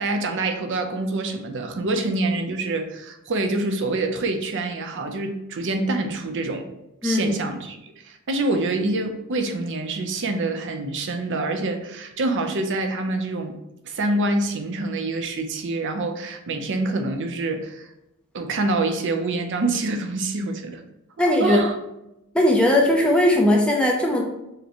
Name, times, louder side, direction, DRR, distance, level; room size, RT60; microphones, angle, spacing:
voice 1, 0.0-6.7 7.0-13.6 13.8-17.9 18.3-20.8 21.4-21.8, right 2 dB, 60° right, 6 dB, 0.6 m, -26 dB
voice 2, 21.2-21.6 22.3-24.2, left 1 dB, 5° left, -1 dB, 0.5 m, -18 dB
6.5 x 2.2 x 2.9 m, 0.89 s
head